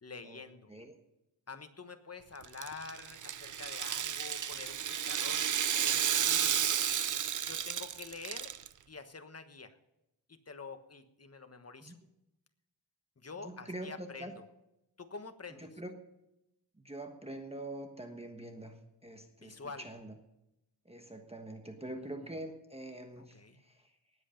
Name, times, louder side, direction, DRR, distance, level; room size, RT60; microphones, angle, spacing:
voice 1, 0.0-0.7 1.5-5.5 5.8-6.6 7.4-8.5 8.9-9.8 10.3-12.0 13.2-14.3 15.0-15.7 19.4-19.9 21.9-22.0 23.2-23.6, left 4 dB, 35° left, 8 dB, 1.3 m, -47 dB
Rattle (instrument), 2.4-8.7, right 9 dB, 45° right, 0.5 m, -32 dB
voice 2, 13.4-14.4 15.6-15.9 16.8-18.8 19.0-20.1 20.8-23.9, right 1 dB, 15° right, 4 dB, 1.3 m, -44 dB
19.0 x 8.1 x 5.2 m, 0.89 s
wide cardioid pair, 95°, 43 cm